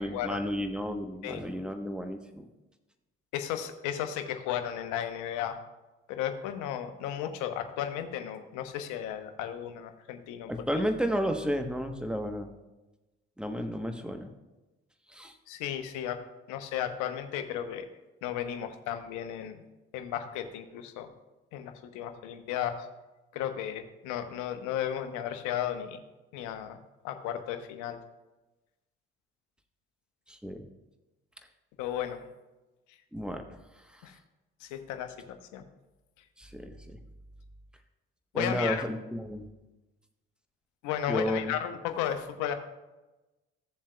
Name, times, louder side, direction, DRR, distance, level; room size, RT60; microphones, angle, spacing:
voice 1, 0.0-2.5 10.5-12.5 13.4-14.3 15.1-15.4 30.3-30.7 33.1-33.5 33.9-34.0 36.4-37.0 38.3-39.5 41.1-41.5, equal, 5° right, 5 dB, 1.2 m, -32 dB
voice 2, 3.3-5.6 6.1-10.8 15.5-16.2 16.5-17.9 18.2-19.6 19.9-21.1 21.5-22.9 23.3-26.0 26.3-26.8 27.0-28.0 31.8-32.2 34.0-34.1 34.6-35.1 35.5-35.6 38.3-38.8 40.8-42.5, left 10 dB, 70° left, 7 dB, 1.0 m, -34 dB
15.5 x 7.2 x 2.3 m, 1.1 s
hypercardioid pair, 50°, 31 cm